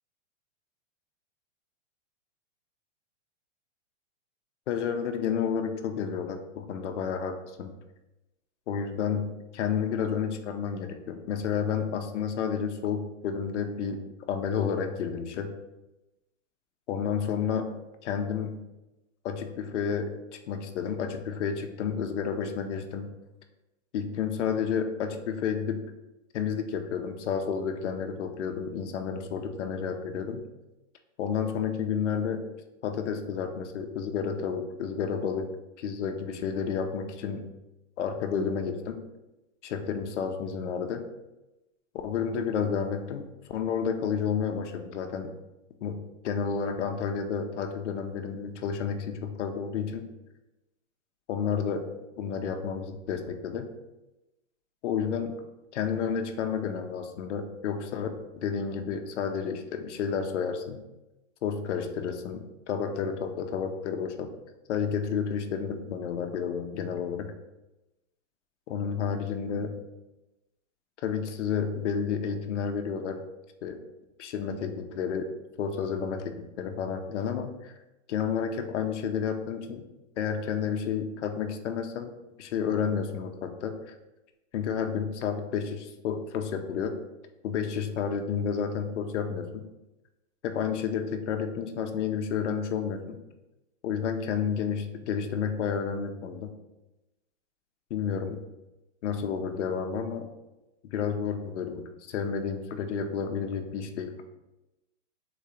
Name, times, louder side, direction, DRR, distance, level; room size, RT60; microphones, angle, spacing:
voice 1, 4.7-7.7 8.7-9.3 9.5-14.0 14.3-15.5 16.9-17.7 18.0-18.6 19.2-20.2 20.5-23.1 23.9-25.8 26.3-30.4 31.2-32.4 32.8-35.5 35.8-37.5 38.0-39.0 39.6-41.0 42.0-45.3 45.8-50.0 51.3-51.8 52.2-53.7 54.8-55.4 55.7-60.8 61.4-64.3 64.7-67.3 68.7-69.8 71.0-73.2 73.6-73.8 74.2-75.3 75.6-77.7 78.1-79.8 80.2-82.1 82.4-83.9 84.5-86.9 87.4-89.6 90.4-93.2 93.8-96.5 97.9-98.4 99.0-100.3 100.8-104.1, left 7 dB, 65° left, 6 dB, 0.7 m, -31 dB
3.9 x 2.8 x 4.8 m, 0.99 s
hypercardioid pair, 140°, 38 cm